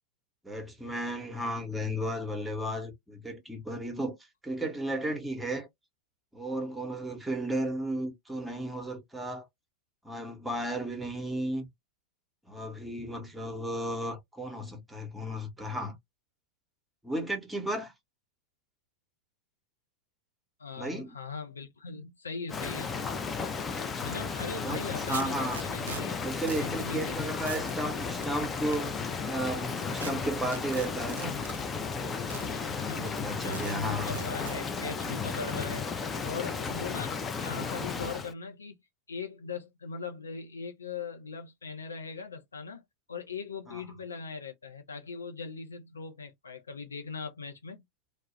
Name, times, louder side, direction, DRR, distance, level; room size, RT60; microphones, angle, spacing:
voice 1, 0.4-4.2 4.4-5.7 6.3-9.5 10.0-11.7 12.5-16.0 17.0-17.9 20.8-21.2 24.6-24.8 25.1-25.6 26.2-31.3 31.9-32.3 32.8-34.2 43.7-43.8, right 1 dB, 5° right, 0.8 m, -34 dB
voice 2, 20.6-22.9 24.0-26.2 26.6-27.6 32.3-33.1 33.4-35.9 36.2-38.8 39.1-42.8 43.1-47.8, left 4 dB, 75° left, 0.5 m, -40 dB
Rain, 22.5-38.3, left 5 dB, 20° left, 0.4 m, -34 dB
sound 1, 24.4-24.5 25.1-26.0 26.5-26.7 27.0-27.1 27.4-27.7 28.2-28.8 30.0-30.1 30.5-31.6 32.3-32.5 33.1-33.2 33.5-33.8 34.1-34.6, right 7 dB, 65° right, 0.3 m, -41 dB
sound 2, 31.8-37.7, left 3 dB, 45° left, 1.1 m, -50 dB
2.2 x 2.0 x 2.9 m
figure-of-eight pair, 90°, 0 cm